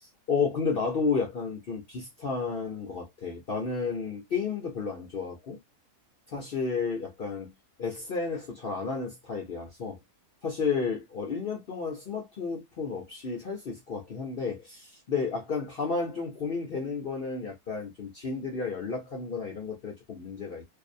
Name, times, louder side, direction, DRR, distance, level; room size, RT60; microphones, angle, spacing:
voice 1, 0.0-5.6 6.3-7.5 7.8-10.0 10.4-20.6, left 5 dB, 55° left, 0.6 m, -32 dB
2.6 x 2.0 x 2.5 m
omnidirectional pair, 1.7 m